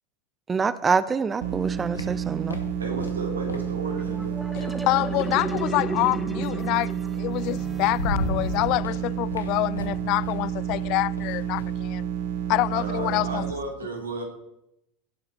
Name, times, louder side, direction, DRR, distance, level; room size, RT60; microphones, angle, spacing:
voice 1, 0.5-2.6, right 5 dB, 25° right, 0.6 m, -25 dB
sound 1, 1.3-5.8 7.1-7.2 7.6-13.3, left 2 dB, 90° left, 1.4 m, -36 dB
sound 2, 1.4-13.5, right 9 dB, 65° right, 0.7 m, -30 dB
voice 2, 2.8-4.4 12.7-14.2, right 3 dB, 90° right, 3.0 m, -33 dB
sound 3, 3.9-9.3, equal, 5° right, 1.7 m, -36 dB
voice 3, 4.9-12.1 12.5-13.4, left 21 dB, 55° left, 0.3 m, -26 dB
17.0 x 7.8 x 4.4 m
hypercardioid pair, 80°, 0 cm